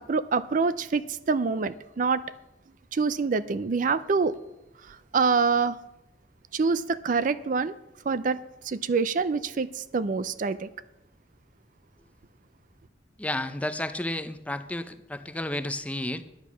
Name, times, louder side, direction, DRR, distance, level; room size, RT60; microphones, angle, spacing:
voice 1, 0.0-2.2 2.9-4.3 4.9-5.8 6.5-7.7 8.1-8.4 8.6-10.7, right 4 dB, 45° right, 15 dB, 0.4 m, -26 dB
voice 2, 13.2-16.2, left 1 dB, 10° left, 10 dB, 0.5 m, -32 dB
10.5 x 8.8 x 6.1 m, 0.89 s
head